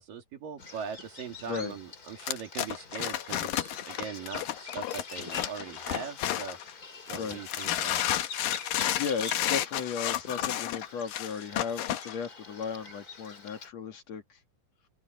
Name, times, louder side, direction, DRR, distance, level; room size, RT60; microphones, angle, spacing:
voice 1, 0.0-6.6 7.1-8.1, right 7 dB, 90° right, 4.4 m, -41 dB
Bird vocalization bird call bird song, 0.6-13.7, left 4 dB, 30° left, 2.7 m, -46 dB
Wood panel fence fumble move, 2.2-6.7 7.1-12.1, left 12 dB, 85° left, 2.8 m, -31 dB
voice 2, 9.0-14.4, left 6 dB, 55° left, 3.0 m, -35 dB
open air
omnidirectional pair, 3.8 m